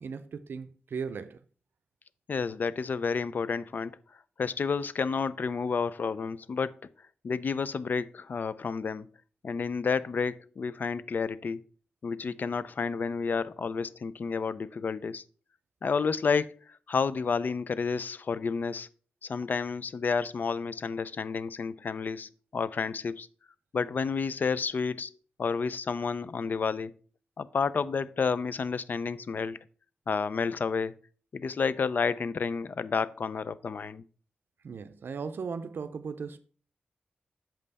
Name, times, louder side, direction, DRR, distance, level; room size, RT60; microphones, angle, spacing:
voice 1, 0.0-1.4 34.6-36.4, right 5 dB, 75° right, 0.5 m, -37 dB
voice 2, 2.3-4.0 4.4-6.7 7.2-9.1 9.4-11.6 12.0-15.2 15.8-18.9 19.2-23.3 23.7-25.1 25.4-26.9 27.4-29.6 30.1-30.9 31.3-34.0, left 5 dB, 55° left, 0.4 m, -30 dB
7.4 x 5.4 x 4.0 m
wide cardioid pair, 105°, 4 cm